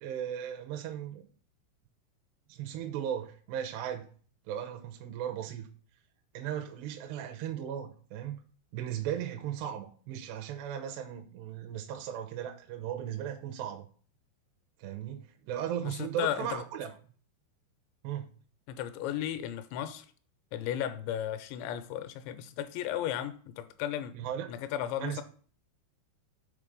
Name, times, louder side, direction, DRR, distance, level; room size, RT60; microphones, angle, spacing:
voice 1, 0.0-1.2 2.5-4.1 4.5-5.7 6.3-8.4 8.7-13.9 14.8-16.9 18.0-18.3 24.1-24.5 25.0-25.2, right 10 dB, 80° right, 2.7 m, -37 dB
voice 2, 15.8-16.6 18.7-20.1 20.5-24.2 24.5-25.2, left 11 dB, 85° left, 2.9 m, -35 dB
7.3 x 4.0 x 5.1 m
omnidirectional pair, 5.2 m